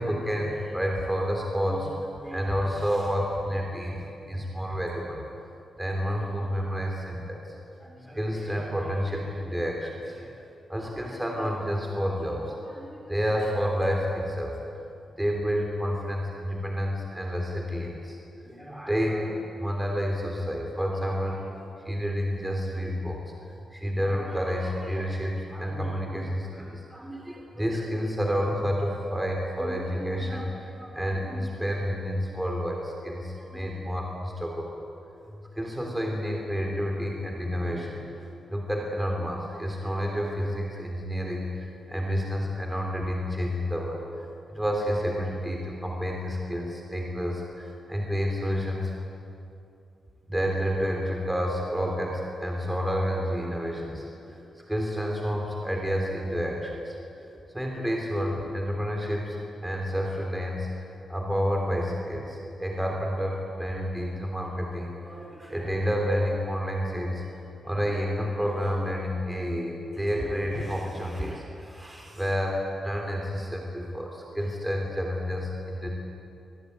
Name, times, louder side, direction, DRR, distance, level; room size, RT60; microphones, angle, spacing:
voice 1, 0.0-5.2 5.8-10.4 10.7-14.6 15.1-18.2 18.4-23.2 23.7-34.8 35.2-48.9 50.3-59.4 59.6-67.2 67.6-75.9, equal, 5° right, 0 dB, 3.4 m, -30 dB
26.5 x 20.5 x 9.5 m, 2.7 s
wide cardioid pair, 140°, 0 cm